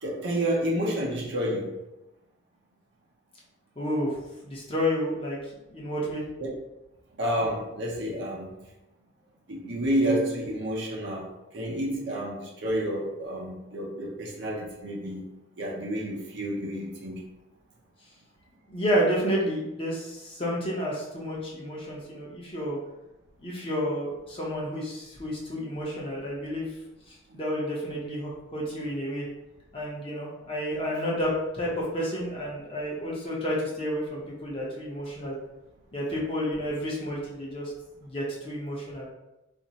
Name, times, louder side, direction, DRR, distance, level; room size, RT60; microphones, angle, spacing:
voice 1, 0.0-1.7 6.4-6.5 7.2-8.5 9.5-11.3 11.5-15.2 15.6-17.2 27.3-27.4, right 1 dB, 65° right, -3 dB, 0.7 m, -29 dB
voice 2, 3.8-4.2 4.4-5.4 5.7-6.2 18.7-22.8 23.4-26.7 27.1-29.3 29.7-35.4 35.9-37.7 38.0-39.0, equal, 30° left, -4 dB, 0.8 m, -30 dB
2.5 x 2.1 x 4.0 m, 0.94 s
head